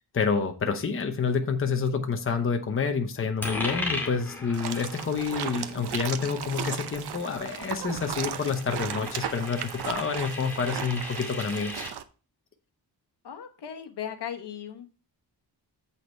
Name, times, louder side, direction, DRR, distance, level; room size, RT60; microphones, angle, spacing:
voice 1, 0.1-11.8, left 5 dB, 30° left, 5 dB, 0.9 m, -28 dB
Coin (dropping), 3.4-11.9, left 2 dB, 5° left, 2.1 m, -38 dB
sound 1, 4.5-12.0, right 8 dB, 70° right, 0.8 m, -36 dB
voice 2, 13.2-15.0, left 9 dB, 80° left, 6 dB, 1.3 m, -37 dB
8.1 x 5.7 x 4.4 m, 0.36 s
wide cardioid pair, 170°, 40 cm